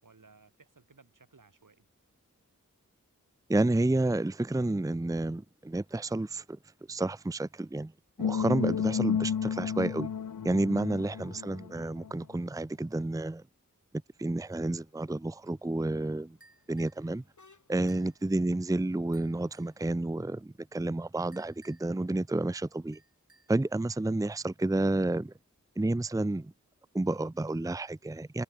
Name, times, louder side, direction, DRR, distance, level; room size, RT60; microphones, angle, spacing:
voice 1, 0.0-1.9 10.9-11.3 17.8-18.1, right 4 dB, 80° right, 6.1 m, -60 dB
voice 2, 3.5-6.6 6.9-7.9 8.2-10.1 10.4-13.4 14.2-16.4 16.7-17.2 17.7-23.0 23.5-25.3 25.8-26.5 26.9-28.4, right 2 dB, 10° right, 0.6 m, -30 dB
sound 1, 8.2-12.1, left 7 dB, 85° left, 0.8 m, -31 dB
sound 2, 14.5-20.4, left 3 dB, 65° left, 6.0 m, -67 dB
sound 3, 16.4-17.1 17.9-18.2 19.1-19.8 21.3-22.0 22.9-23.6, right 2 dB, 45° right, 5.7 m, -61 dB
wide cardioid pair, 50°, 31 cm